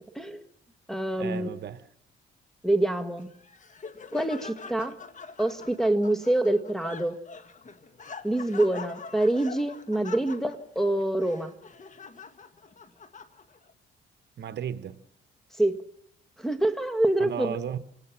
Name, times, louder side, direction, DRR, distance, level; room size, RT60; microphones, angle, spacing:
voice 1, 0.1-0.5 0.9-1.5 2.6-3.3 4.1-5.0 5.4-7.2 8.2-11.5 15.6-15.8 16.4-17.6, right 1 dB, ahead, 1.7 m, -26 dB
voice 2, 1.1-1.8 14.4-15.0 17.2-17.8, right 8 dB, 60° right, 1.1 m, -34 dB
Laughter, 3.2-13.7, left 5 dB, 40° left, 1.7 m, -44 dB
26.5 x 19.0 x 6.1 m
cardioid pair, 90°, 20 cm